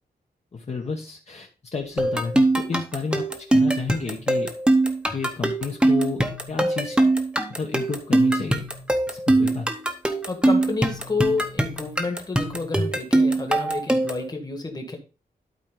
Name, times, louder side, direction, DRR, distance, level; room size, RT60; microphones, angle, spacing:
voice 1, 0.5-4.5 5.1-7.0 7.6-8.6 9.1-9.7, left 4 dB, 40° left, 0 dB, 1.2 m, -31 dB
sound 1, 2.0-14.3, right 2 dB, 5° right, 0.9 m, -22 dB
voice 2, 10.3-15.0, left 3 dB, 25° left, 4 dB, 1.7 m, -29 dB
12.0 x 4.6 x 3.8 m, 0.33 s
wide cardioid pair, 170°, 17 cm